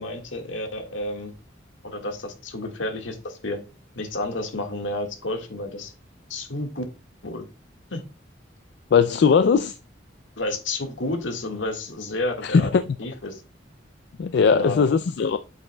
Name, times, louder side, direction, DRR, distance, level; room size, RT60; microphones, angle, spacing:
voice 1, 0.0-1.3 1.8-3.6 3.9-5.9 6.3-6.8 7.2-7.4 7.9-8.0 10.4-13.4 14.4-14.9, left 1 dB, 80° left, 1.7 m, -31 dB
voice 2, 8.9-9.7 12.4-12.8 14.2-15.4, left 6 dB, 60° left, 0.3 m, -19 dB
8.4 x 6.4 x 2.2 m
head